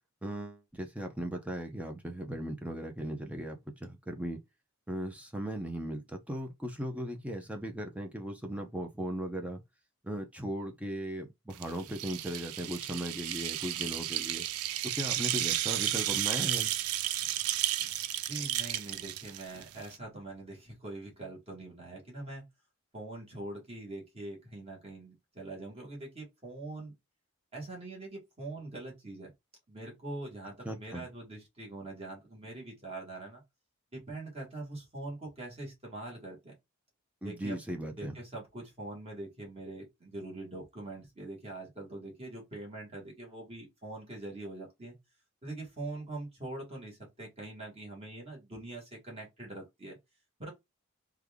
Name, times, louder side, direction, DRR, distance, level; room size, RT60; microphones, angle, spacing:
voice 1, 0.2-4.4 4.9-9.6 10.0-14.5 14.8-16.7 30.6-31.1 37.2-38.2, equal, 5° right, 0.5 m, -37 dB
sound 1, 11.5-20.0, right 13 dB, 90° right, 0.4 m, -33 dB
voice 2, 18.3-22.5 22.9-26.9 27.5-29.3 29.7-33.4 33.9-36.5 37.2-37.6 37.9-45.0 45.4-50.0 50.4-50.5, right 2 dB, 30° right, 1.6 m, -43 dB
3.4 x 2.3 x 3.4 m
head